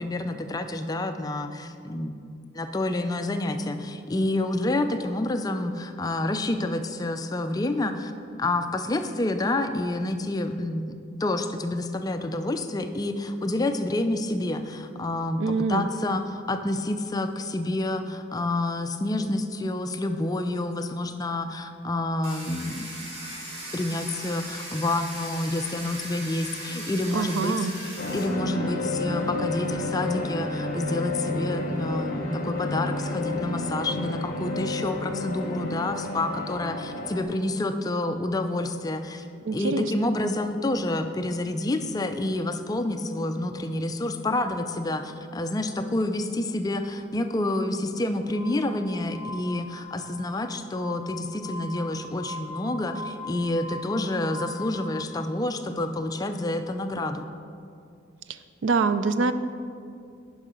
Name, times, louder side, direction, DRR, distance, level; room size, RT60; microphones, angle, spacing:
voice 1, 0.0-8.1 8.4-22.9 23.7-39.3 39.5-57.3, left 2 dB, 20° left, 8 dB, 0.3 m, -28 dB
voice 2, 15.4-15.9 27.1-27.7 39.5-39.9 58.6-59.3, right 4 dB, 70° right, 11 dB, 0.4 m, -24 dB
Domestic sounds home sounds, 22.2-28.2, right 1 dB, 35° right, 1.7 m, -38 dB
sound 1, 28.0-37.2, left 2 dB, 45° left, 0.9 m, -30 dB
Glass, 48.3-55.0, left 2 dB, 10° right, 1.3 m, -40 dB
9.9 x 5.5 x 5.0 m, 2.4 s
head